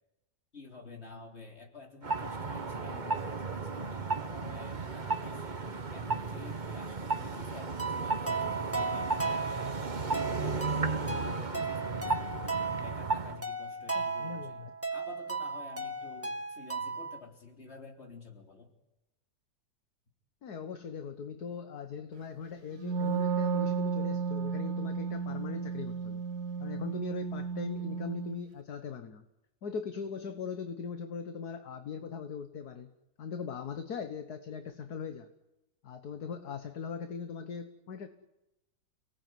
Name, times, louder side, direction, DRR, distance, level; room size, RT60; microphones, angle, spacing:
voice 1, 0.5-5.6 5.9-9.8 10.2-14.6 14.9-18.7, left 3 dB, 35° left, 2 dB, 4.2 m, -50 dB
sound 1, 2.0-13.4, right 3 dB, 30° right, 1.3 m, -34 dB
sound 2, 7.8-17.2, right 4 dB, 5° right, 2.1 m, -36 dB
voice 2, 14.2-14.7 20.4-26.2 26.6-29.2 29.6-32.9 33.2-35.3 35.8-38.1, left 6 dB, 60° left, 8 dB, 1.8 m, -40 dB
Wind instrument woodwind instrument, 22.8-28.5, right 6 dB, 60° right, 1.7 m, -33 dB
29.5 x 19.0 x 9.4 m, 0.96 s
omnidirectional pair, 1.9 m